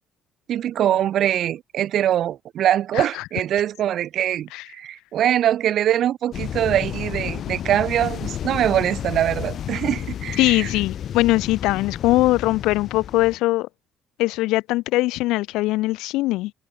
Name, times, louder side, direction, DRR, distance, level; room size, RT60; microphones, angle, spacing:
voice 1, 0.5-10.7, right 11 dB, 60° right, 1.0 m, -23 dB
sound 1, 6.3-13.4, left 10 dB, 55° left, 1.3 m, -31 dB
voice 2, 10.4-13.7 14.2-16.5, left 19 dB, 70° left, 0.4 m, -21 dB
hypercardioid pair, 55°, 0 cm